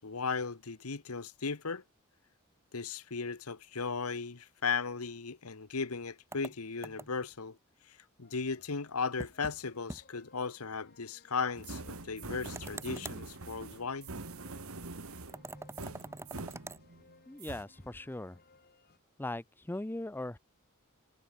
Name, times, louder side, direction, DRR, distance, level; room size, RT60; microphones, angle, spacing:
voice 1, 0.0-1.8 2.7-7.6 8.2-14.1, left 5 dB, 90° left, 1.2 m, -36 dB
sound 1, 6.3-7.3 9.2-9.6 9.9-10.0 10.4-10.5 12.5-13.2 15.3-16.8, right 2 dB, 10° right, 0.8 m, -45 dB
sound 2, 8.2-19.0, left 3 dB, 45° left, 3.1 m, -63 dB
sound 3, 11.6-17.1 17.4-17.6, right 3 dB, 70° right, 1.8 m, -44 dB
voice 2, 17.3-18.4 19.2-20.4, left 1 dB, 10° left, 0.5 m, -39 dB
head